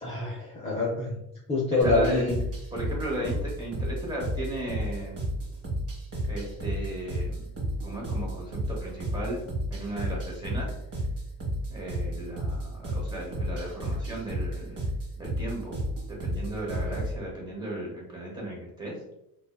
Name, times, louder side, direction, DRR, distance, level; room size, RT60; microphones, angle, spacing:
voice 1, 0.0-1.1 1.5-2.4, left 2 dB, 15° left, -6 dB, 0.5 m, -26 dB
voice 2, 1.8-2.3 2.7-5.2 6.3-7.5 7.8-9.4 9.7-10.7 11.7-14.8 15.2-15.8 16.1-19.0, right 1 dB, 10° right, -3 dB, 0.8 m, -35 dB
sound 1, 1.8-17.2, equal, 35° right, 0.9 m, -32 dB
2.5 x 2.3 x 2.2 m, 0.81 s
cardioid pair, 120°, 42 cm